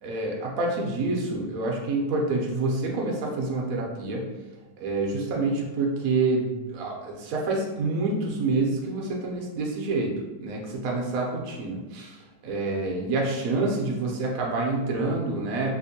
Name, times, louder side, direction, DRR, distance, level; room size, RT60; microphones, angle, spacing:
voice 1, 0.0-4.2 4.8-10.1 10.4-15.7, right 3 dB, 85° right, -1 dB, 0.7 m, -27 dB
3.4 x 2.5 x 2.7 m, 1.2 s
omnidirectional pair, 2.3 m